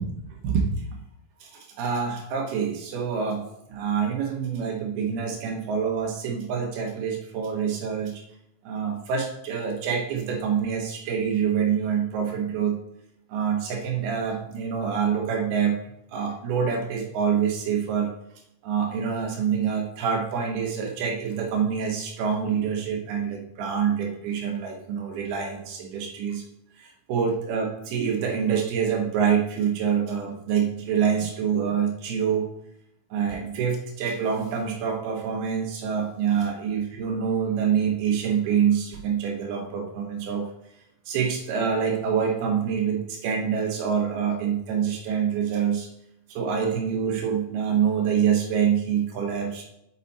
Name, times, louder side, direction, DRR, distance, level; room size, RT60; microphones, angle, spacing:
voice 1, 0.3-0.7 1.4-8.2 8.6-12.8 13.3-15.8 16.1-18.1 18.6-26.4 26.8-32.5 33.1-40.5 41.1-45.9 46.3-49.7, right 7 dB, 70° right, 2 dB, 2.8 m, -26 dB
8.4 x 7.9 x 4.3 m, 0.79 s
omnidirectional pair, 5.3 m